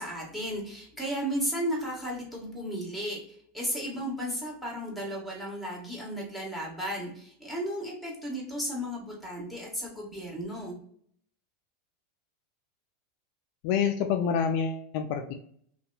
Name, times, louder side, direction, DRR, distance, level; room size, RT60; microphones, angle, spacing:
voice 1, 0.0-3.2 3.5-10.8, equal, ahead, -2 dB, 1.3 m, -34 dB
voice 2, 13.6-15.3, left 7 dB, 60° left, 5 dB, 0.3 m, -27 dB
2.6 x 2.2 x 2.5 m, 0.64 s
hypercardioid pair, 95°, 0 cm